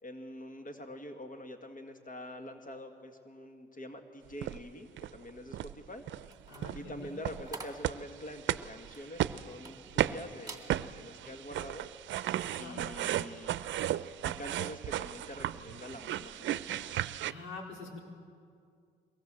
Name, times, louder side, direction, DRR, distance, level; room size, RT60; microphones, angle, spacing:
voice 1, 0.0-6.0 6.7-11.9 12.6-13.5 14.2-16.8, left 1 dB, 45° left, 5 dB, 2.0 m, -45 dB
sound 1, 4.4-4.6 5.0-5.2 5.5-5.7 6.1-6.3 6.6-17.3, right 12 dB, 70° right, 0.6 m, -35 dB
sound 2, 6.2-10.1 10.4-10.7 11.2-11.4, right 3 dB, 20° right, 2.4 m, -49 dB
voice 2, 6.5-7.1 12.5-12.8 17.2-18.0, left 3 dB, 85° left, 0 dB, 4.2 m, -45 dB
23.0 x 18.5 x 7.6 m, 2.3 s
cardioid pair, 90°, 20 cm